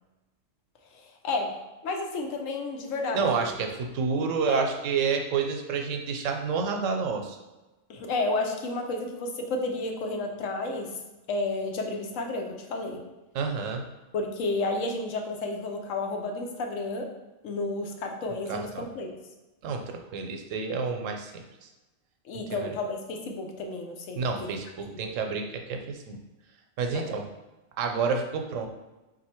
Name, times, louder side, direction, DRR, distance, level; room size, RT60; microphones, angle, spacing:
voice 1, 1.8-3.5 4.5-4.7 7.9-10.9 11.3-13.0 14.1-17.1 17.4-19.1 22.3-24.5 24.9-25.0 26.9-27.1, left 2 dB, 80° left, 3 dB, 1.0 m, -31 dB
voice 2, 3.1-7.4 13.3-13.8 18.5-18.8 19.6-21.7 22.6-22.7 24.1-26.2 26.8-27.3 27.8-28.7, right 5 dB, 75° right, 4 dB, 1.0 m, -29 dB
4.0 x 2.6 x 4.3 m, 1.1 s
omnidirectional pair, 1.3 m